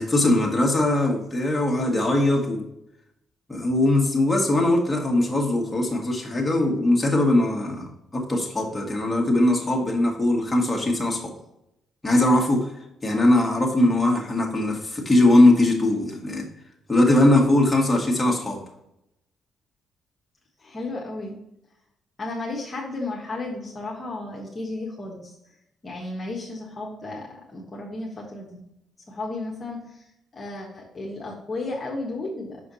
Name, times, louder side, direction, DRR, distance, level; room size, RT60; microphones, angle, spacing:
voice 1, 0.0-2.6 3.5-11.3 12.0-12.7 13.0-16.5 16.9-18.6, left 1 dB, 15° left, -1 dB, 1.9 m, -20 dB
voice 2, 13.1-13.6 20.6-21.4 22.2-25.3 25.8-28.6 29.1-29.8 30.3-32.6, left 2 dB, 35° left, -3 dB, 1.4 m, -33 dB
6.1 x 4.9 x 4.1 m, 0.82 s
cardioid pair, 90°, 0 cm